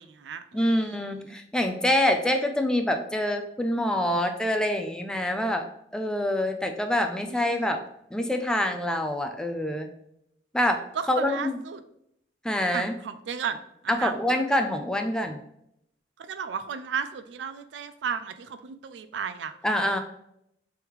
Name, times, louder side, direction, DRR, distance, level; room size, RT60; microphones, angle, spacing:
voice 1, 0.0-1.0 7.3-7.7 11.0-11.8 12.7-13.6 13.8-14.1 16.2-19.5, right 6 dB, 75° right, 11 dB, 0.4 m, -34 dB
voice 2, 0.5-5.7 5.9-7.8 8.1-9.9 10.5-10.8 11.1-11.6 12.4-12.9 13.9-15.4 19.6-20.0, left 1 dB, 5° left, 5 dB, 0.3 m, -26 dB
3.5 x 3.1 x 4.7 m, 0.76 s
head